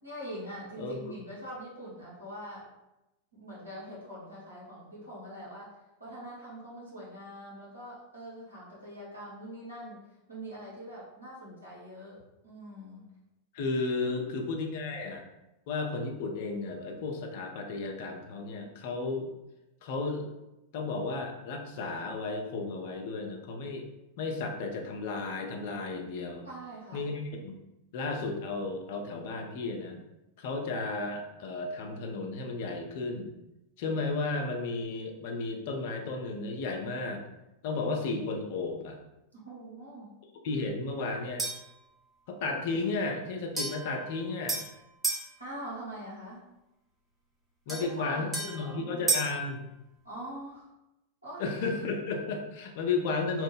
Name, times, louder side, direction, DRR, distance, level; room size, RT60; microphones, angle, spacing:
voice 1, 0.0-2.7 3.3-5.7 6.0-10.0 10.3-13.0 14.1-14.4 26.4-27.1 39.3-40.1 45.4-46.4 47.7-48.8 50.0-50.7 51.2-51.5, right 1 dB, 80° right, -7 dB, 1.2 m, -43 dB
voice 2, 0.8-1.1 13.5-15.2 15.7-19.3 19.8-20.2 20.7-23.8 24.2-26.5 26.9-27.6 27.9-30.0 30.4-33.3 33.8-37.2 37.6-39.0 40.4-41.4 42.3-44.6 47.7-49.6 51.4-53.4, left 3 dB, 50° left, 2 dB, 0.5 m, -33 dB
sound 1, 41.4-41.7 43.6-45.3 47.7-49.4, right 3 dB, 10° right, 0.8 m, -33 dB
2.9 x 2.0 x 3.2 m, 0.93 s
figure-of-eight pair, 90°, 0 cm